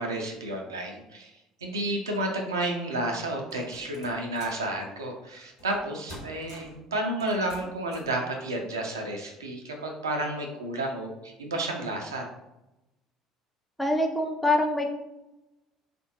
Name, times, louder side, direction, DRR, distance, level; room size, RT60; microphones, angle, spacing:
voice 1, 0.0-1.3 1.6-12.3, right 1 dB, 80° right, 2 dB, 0.5 m, -31 dB
sound 1, 3.5-4.7 5.6-5.8 6.1-6.8 7.2-8.2, left 1 dB, 75° left, 1.1 m, -46 dB
voice 2, 13.8-14.9, left 2 dB, 5° left, 2 dB, 0.6 m, -24 dB
3.6 x 2.5 x 2.7 m, 0.93 s
figure-of-eight pair, 60°, 2 cm